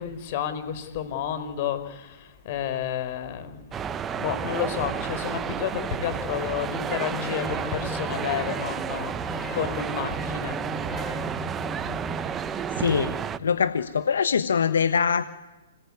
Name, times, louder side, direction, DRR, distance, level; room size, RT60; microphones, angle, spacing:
voice 1, 0.0-10.6, left 9 dB, 45° left, 12 dB, 4.3 m, -31 dB
sound 1, 3.7-13.4, right 7 dB, 15° right, 0.9 m, -31 dB
sound 2, 6.9-8.8 9.3-12.8, left 4 dB, 15° left, 7.0 m, -39 dB
voice 2, 12.8-13.1 13.4-15.2, left 6 dB, 85° left, 11 dB, 1.2 m, -23 dB
27.0 x 20.5 x 9.7 m, 1.1 s
hypercardioid pair, 145°, 0 cm